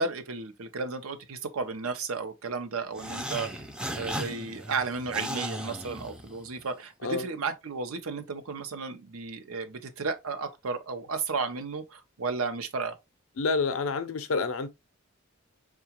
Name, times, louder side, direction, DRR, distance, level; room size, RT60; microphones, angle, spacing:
voice 1, 0.0-3.5 4.0-12.9, right 4 dB, 85° right, 0.7 m, -33 dB
sound 1, 2.9-6.6, equal, 5° right, 0.4 m, -36 dB
voice 2, 13.4-14.7, left 4 dB, 75° left, 0.5 m, -28 dB
4.6 x 2.4 x 2.9 m
head